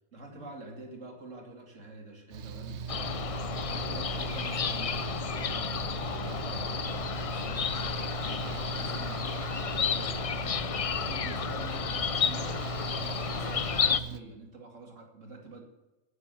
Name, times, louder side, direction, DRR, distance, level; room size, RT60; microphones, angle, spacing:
voice 1, 0.1-5.0 5.4-12.6 13.0-15.6, right 2 dB, 85° right, 2 dB, 2.8 m, -47 dB
Mechanical fan, 2.3-14.2, right 8 dB, 65° right, 1.0 m, -39 dB
sound 1, 2.9-14.0, left 7 dB, 60° left, 0.3 m, -32 dB
9.6 x 9.1 x 9.2 m, 1.1 s
omnidirectional pair, 1.3 m